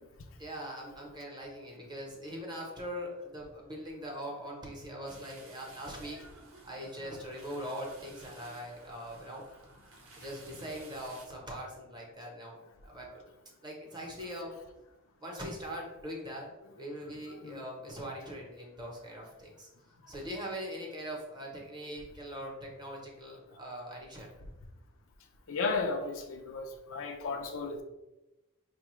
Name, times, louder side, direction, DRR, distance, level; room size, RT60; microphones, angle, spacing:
voice 1, 0.4-6.3 6.6-9.5 10.2-13.3 13.6-14.5 15.2-16.5 16.8-19.7 20.1-24.5, equal, 20° right, -2 dB, 0.9 m, -42 dB
sound 1, 5.1-11.3, right 2 dB, 70° right, 0.7 m, -54 dB
voice 2, 25.5-27.8, left 4 dB, 65° left, 4 dB, 0.5 m, -34 dB
4.8 x 2.3 x 3.0 m, 1.0 s
head